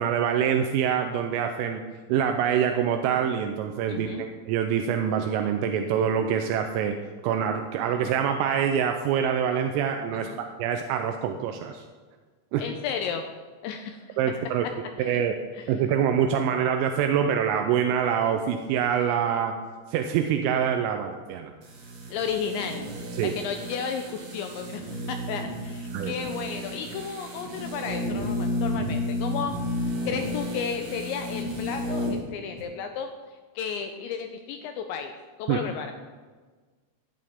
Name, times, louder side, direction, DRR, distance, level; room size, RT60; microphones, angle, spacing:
voice 1, 0.0-1.8 2.1-7.0 7.2-10.3 10.6-11.8 12.5-12.6 14.2-14.7 15.0-15.3 15.7-19.5 19.9-21.5 23.2-23.3 25.9-26.1 35.5-35.6, right 8 dB, 85° right, 5 dB, 3.3 m, -25 dB
voice 2, 3.9-4.3 10.2-10.4 12.6-13.3 13.6-14.2 15.0-15.2 15.6-15.7 22.1-22.9 23.2-29.6 30.1-33.1 33.6-35.1 35.4-35.9, left 7 dB, 85° left, 5 dB, 2.7 m, -33 dB
sound 1, 21.6-32.3 32.6-32.7, left 1 dB, 45° right, 2.2 m, -32 dB
16.0 x 11.5 x 3.7 m, 1.4 s
omnidirectional pair, 5.9 m